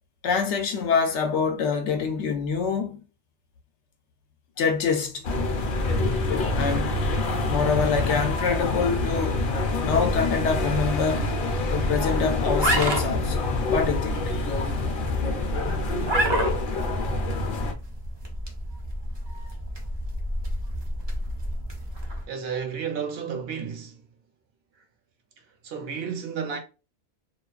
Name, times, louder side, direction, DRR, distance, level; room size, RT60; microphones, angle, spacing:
voice 1, 0.2-3.0 4.6-5.2 6.5-7.0 7.5-9.4 9.8-11.3 11.7-14.2, left 5 dB, 90° left, 0.9 m, -25 dB
sound 1, 5.2-17.7, left 2 dB, 60° left, 0.7 m, -26 dB
sound 2, 12.5-22.2, right 1 dB, 40° right, 0.4 m, -30 dB
voice 2, 22.3-24.0 25.6-26.6, right 6 dB, 65° right, 0.8 m, -32 dB
2.4 x 2.2 x 2.3 m
omnidirectional pair, 1.1 m